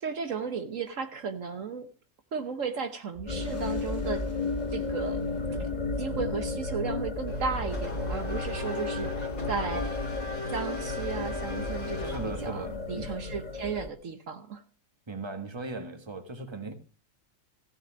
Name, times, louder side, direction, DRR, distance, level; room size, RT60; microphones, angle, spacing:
voice 1, 0.0-1.9 2.3-4.3 4.7-5.2 6.0-10.0 10.5-14.6, right 5 dB, 65° right, 1.4 m, -35 dB
sound 1, 3.1-12.4, equal, 10° left, 2.2 m, -50 dB
sound 2, 3.3-13.9, left 3 dB, 30° left, 1.9 m, -33 dB
Race car auto racing / Accelerating revving vroom, 7.3-12.8, left 3 dB, 80° left, 3.2 m, -39 dB
voice 2, 12.0-13.2 15.1-16.7, right 3 dB, 20° right, 1.7 m, -38 dB
15.5 x 7.2 x 7.5 m
omnidirectional pair, 1.5 m